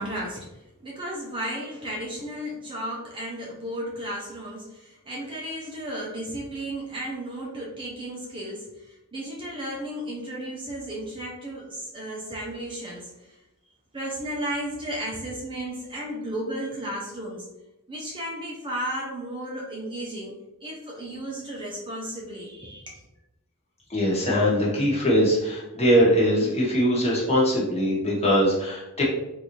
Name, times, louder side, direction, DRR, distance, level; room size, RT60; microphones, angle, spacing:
voice 1, 0.0-13.4 13.9-17.4 17.9-20.3 20.6-23.0, right 1 dB, 25° right, -3 dB, 0.6 m, -34 dB
voice 2, 23.9-29.0, equal, 30° left, -6 dB, 1.1 m, -21 dB
3.8 x 2.6 x 3.0 m, 0.92 s
head